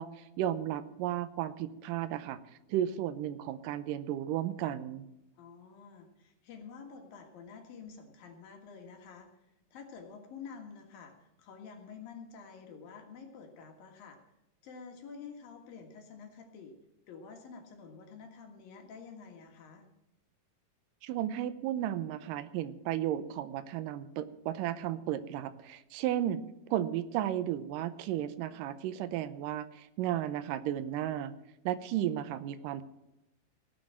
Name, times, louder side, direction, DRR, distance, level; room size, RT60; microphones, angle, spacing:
voice 1, 0.0-2.4 2.7-5.0 21.0-26.4 26.7-31.3 31.7-32.8, right 11 dB, 80° right, 12 dB, 1.9 m, -34 dB
voice 2, 5.3-9.3 9.7-14.2 14.6-16.8 17.1-19.9, left 5 dB, 65° left, 3 dB, 3.2 m, -49 dB
17.5 x 7.6 x 7.5 m, 0.89 s
omnidirectional pair, 4.7 m